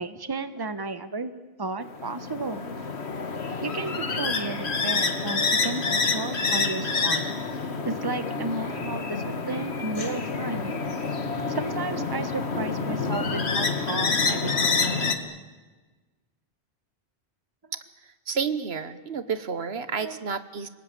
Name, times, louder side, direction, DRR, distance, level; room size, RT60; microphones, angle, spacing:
voice 1, 0.0-1.3 1.6-2.6 3.6-7.3 7.8-10.7 11.5-14.8 20.0-20.2, right 3 dB, 20° right, 10 dB, 1.1 m, -33 dB
sound 1, 1.8-15.1, left 4 dB, 85° left, 1.9 m, -28 dB
voice 2, 18.3-20.7, right 6 dB, 75° right, 12 dB, 1.4 m, -30 dB
29.5 x 20.0 x 9.1 m, 1.3 s
omnidirectional pair, 1.1 m